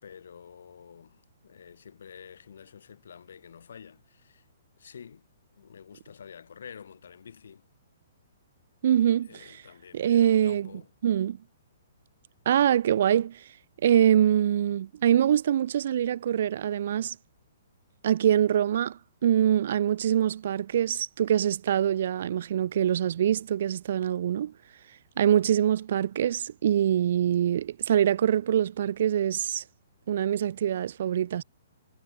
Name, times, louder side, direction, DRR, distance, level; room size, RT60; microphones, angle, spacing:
voice 1, 0.0-4.5 4.8-5.3 5.6-7.7 9.3-10.9, left 7 dB, 75° left, 6.6 m, -49 dB
voice 2, 8.8-9.5 9.9-10.7 11.0-11.4 12.5-13.4 13.8-17.2 18.0-24.5 25.2-29.6 30.1-31.4, right 10 dB, 60° right, 2.2 m, -24 dB
hypercardioid pair, 145°, 0 cm